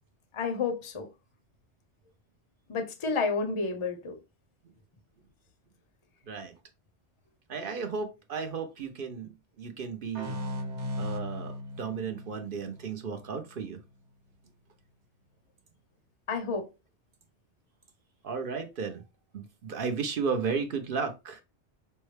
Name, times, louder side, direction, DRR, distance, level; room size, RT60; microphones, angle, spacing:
voice 1, 0.3-1.1 2.7-4.1 16.3-16.6, left 4 dB, 35° left, 0.6 m, -30 dB
voice 2, 7.5-9.3 9.6-10.3 11.0-13.8 18.2-19.0 19.3-21.4, right 5 dB, 55° right, 0.8 m, -34 dB
sound 1, 10.1-13.6, left 1 dB, 85° right, 1.3 m, -37 dB
5.4 x 2.1 x 3.2 m
omnidirectional pair, 1.2 m